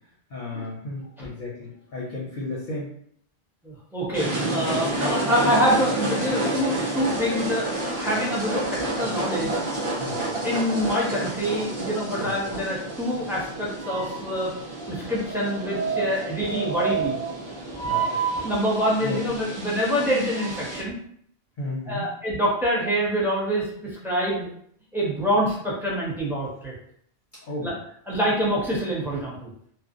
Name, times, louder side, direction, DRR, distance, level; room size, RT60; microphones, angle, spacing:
voice 1, 0.3-2.9 10.0-10.2 12.2-12.3 17.8-18.0 19.0-19.2 21.6-22.0 27.5-27.8, left 2 dB, 60° left, -4 dB, 0.6 m, -33 dB
voice 2, 3.6-9.5 9.8-10.2 10.4-14.5 14.9-17.2 17.8-21.0 21.9-23.7 24.0-24.5 24.9-26.7 27.6-27.7 28.1-29.5, equal, 5° right, -6 dB, 0.4 m, -26 dB
sound 1, 4.1-20.8, right 2 dB, 30° right, 0.8 m, -29 dB
2.5 x 2.1 x 2.5 m, 0.64 s
omnidirectional pair, 1.1 m